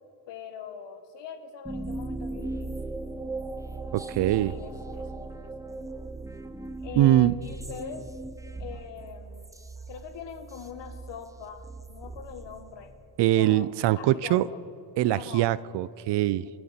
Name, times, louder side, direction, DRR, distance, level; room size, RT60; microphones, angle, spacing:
voice 1, 0.3-2.8 4.4-5.4 6.8-8.1 8.6-9.5 9.9-12.9 13.3-13.7 13.9-14.6 15.1-15.5, left 7 dB, 65° left, 8 dB, 1.6 m, -42 dB
sound 1, 1.6-13.2, right 2 dB, 5° right, 0.6 m, -38 dB
voice 2, 3.9-4.5 7.0-7.3 13.2-14.5 15.0-16.5, right 14 dB, 65° right, 19 dB, 0.5 m, -23 dB
25.0 x 9.3 x 4.3 m, 2.7 s
cardioid pair, 105°, 46 cm